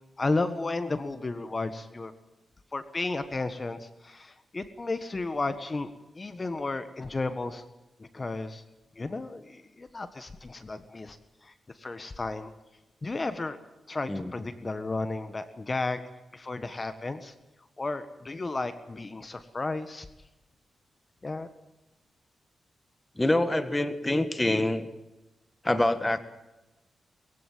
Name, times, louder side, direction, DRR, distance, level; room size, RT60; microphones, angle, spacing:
voice 1, 0.2-2.1 2.7-5.9 6.1-7.6 8.0-8.6 9.0-11.2 11.4-11.5 11.8-12.5 13.0-13.6 13.9-16.0 16.3-17.3 17.8-20.0 21.2-21.5, left 3 dB, 30° left, 11 dB, 1.6 m, -33 dB
voice 2, 23.2-24.9 25.6-26.2, left 1 dB, 15° left, 11 dB, 1.7 m, -25 dB
21.5 x 16.0 x 7.6 m, 1.0 s
cardioid pair, 70°, 0 cm